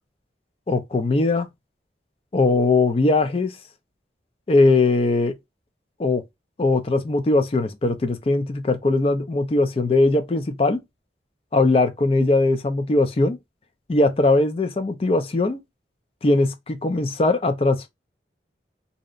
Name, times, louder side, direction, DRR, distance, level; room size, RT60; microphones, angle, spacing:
voice 1, 0.7-1.5 2.3-3.6 4.5-5.3 6.0-6.2 6.6-10.8 11.5-13.4 13.9-15.6 16.2-17.8, left 2 dB, 30° left, 0.4 m, -20 dB
2.7 x 2.0 x 2.4 m
head